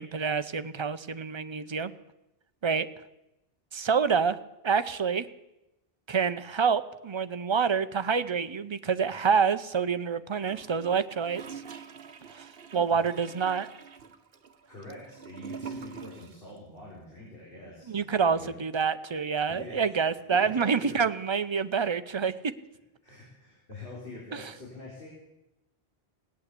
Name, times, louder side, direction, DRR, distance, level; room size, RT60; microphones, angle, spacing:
voice 1, 0.0-1.9 2.6-2.9 3.7-4.4 4.6-5.3 6.1-11.6 12.3-12.5 12.7-13.7 17.9-22.3 24.3-24.4, right 6 dB, 35° right, 12 dB, 0.5 m, -27 dB
Gurgling / Toilet flush, 10.4-16.5 16.8-16.9, right 6 dB, 65° right, 1.1 m, -45 dB
voice 2, 12.7-13.1 14.7-18.6 19.5-20.0 20.3-21.0 23.0-25.1, left 2 dB, 60° left, -5 dB, 4.1 m, -45 dB
18.5 x 8.6 x 8.2 m, 0.93 s
omnidirectional pair, 1.1 m